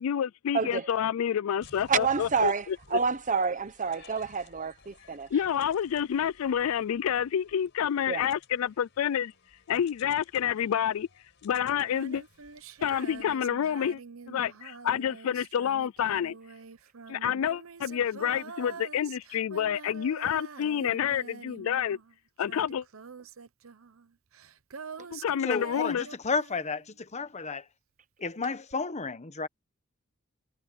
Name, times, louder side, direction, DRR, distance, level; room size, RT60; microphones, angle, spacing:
voice 1, 0.0-2.8 5.3-9.3 9.7-11.1 11.4-12.2 12.8-14.0 14.3-16.4 17.1-22.0 22.4-22.8 25.1-26.0, left 9 dB, 80° left, 0.4 m, -28 dB
voice 2, 0.5-0.9 1.9-5.3 8.1-8.2, right 5 dB, 40° right, 1.1 m, -28 dB
sound 1, 1.6-13.3, left 4 dB, 60° left, 4.7 m, -57 dB
Female singing, 11.8-27.2 28.7-28.8, right 5 dB, 70° right, 0.9 m, -46 dB
voice 3, 25.4-27.7 28.2-29.5, left 4 dB, 35° left, 1.1 m, -32 dB
head